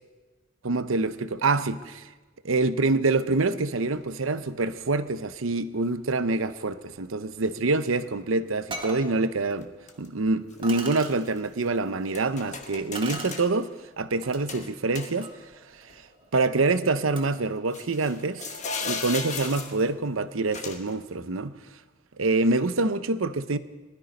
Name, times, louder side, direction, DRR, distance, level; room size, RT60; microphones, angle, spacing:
voice 1, 0.6-2.1 2.4-9.7 10.0-15.3 16.3-18.5 18.8-21.5 22.2-23.6, right 3 dB, 80° right, 0.8 m, -26 dB
sound 1, 3.9-4.0 5.0-5.1 6.1-6.3 9.6-10.1 10.5-11.7 12.1-13.5 14.5-15.5 15.9-16.0 17.7-19.9 20.5-21.0, left 5 dB, 35° left, 1.3 m, -36 dB
sound 2, 8.1-8.2 8.7-9.1 9.9-10.0 10.6-11.1 12.9-13.5 14.2-14.4 14.9-17.5, right 2 dB, 25° right, 1.8 m, -40 dB
20.0 x 13.0 x 5.3 m
head